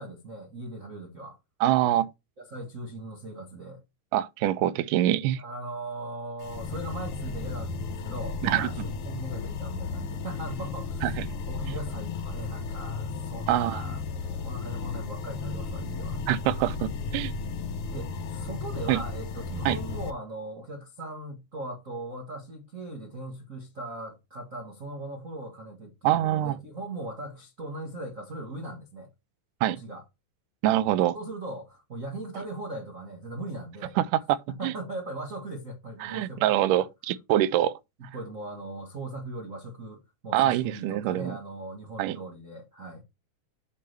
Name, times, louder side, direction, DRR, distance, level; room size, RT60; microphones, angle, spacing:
voice 1, 0.0-1.4 2.4-3.8 5.4-11.1 11.4-16.2 17.9-29.1 29.7-30.0 31.1-34.0 34.5-36.5 38.0-43.0, right 2 dB, 65° right, 0.7 m, -39 dB
voice 2, 1.6-2.1 4.1-5.4 8.4-8.7 11.0-11.1 13.5-13.8 16.3-17.3 18.9-19.0 19.7-19.8 26.0-26.6 29.6-29.8 30.6-31.2 34.3-34.4 34.6-34.7 36.0-37.8 40.3-41.3 42.0-42.2, right 13 dB, 85° right, 2.1 m, -24 dB
sound 1, 6.4-20.1, left 4 dB, 85° left, 1.2 m, -34 dB
8.4 x 3.3 x 6.5 m
omnidirectional pair, 3.7 m